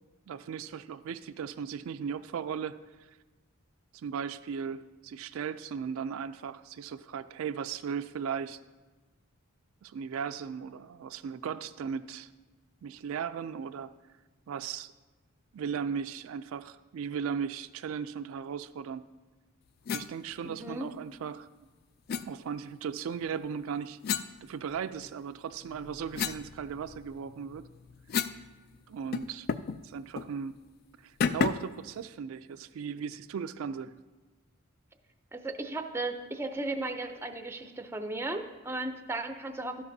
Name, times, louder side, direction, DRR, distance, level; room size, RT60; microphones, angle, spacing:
voice 1, 0.3-2.8 3.9-8.6 9.8-12.3 12.8-13.9 14.5-14.9 15.5-19.0 19.9-21.5 22.3-24.0 24.4-27.7 28.9-29.5 29.8-30.6 31.0-34.0, right 7 dB, 75° right, 11 dB, 0.3 m, -37 dB
sound 1, 19.9-20.1 22.1-22.3 24.0-25.1 25.6-28.5 28.7-28.8 29.1-29.8 30.1-30.3 31.2-31.8, left 6 dB, 45° left, 0.3 m, -33 dB
voice 2, 20.4-20.9 35.3-39.8, right 2 dB, 10° right, 7 dB, 0.5 m, -35 dB
12.0 x 11.0 x 2.7 m, 1.2 s
head